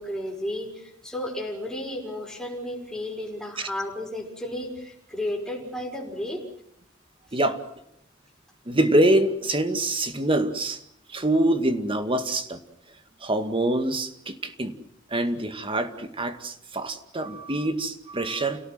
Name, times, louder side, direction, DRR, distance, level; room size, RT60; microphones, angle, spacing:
voice 1, 0.0-6.4 7.3-7.4, left 1 dB, 5° left, 1 dB, 5.7 m, -33 dB
voice 2, 8.7-10.8 11.1-12.6 13.2-14.7 15.1-18.6, right 1 dB, 25° right, 9 dB, 2.1 m, -25 dB
29.5 x 18.0 x 7.7 m, 0.75 s
head